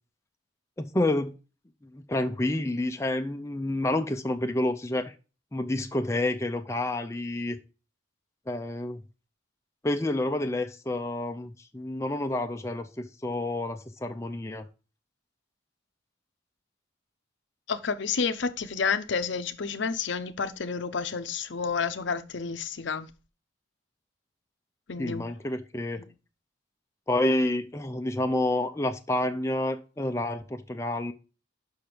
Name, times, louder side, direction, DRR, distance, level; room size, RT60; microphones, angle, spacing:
voice 1, 0.8-1.3 1.8-5.1 5.5-7.6 8.5-9.0 9.8-14.7 25.0-26.0 27.1-31.1, left 1 dB, 15° left, 0.4 m, -29 dB
voice 2, 17.7-23.1 24.9-25.2 26.0-26.1, left 5 dB, 65° left, 0.6 m, -30 dB
6.0 x 5.6 x 5.0 m
head